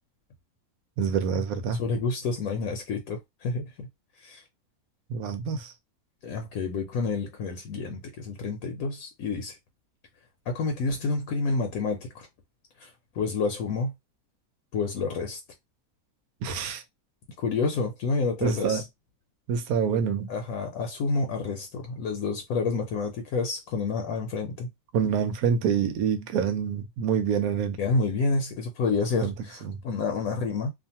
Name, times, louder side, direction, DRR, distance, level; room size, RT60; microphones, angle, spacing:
voice 1, 1.0-1.8 5.1-5.7 16.4-16.8 18.4-18.8 19.5-20.3 24.9-27.8 29.2-29.3 29.6-29.8, right 7 dB, 80° right, 1.1 m, -26 dB
voice 2, 1.8-3.9 4.2-4.4 6.2-9.6 10.5-12.3 12.8-12.9 13.2-13.9 14.7-15.4 17.4-18.8 20.3-24.7 27.8-30.7, left 4 dB, 80° left, 1.0 m, -29 dB
2.5 x 2.4 x 2.8 m
omnidirectional pair, 1.5 m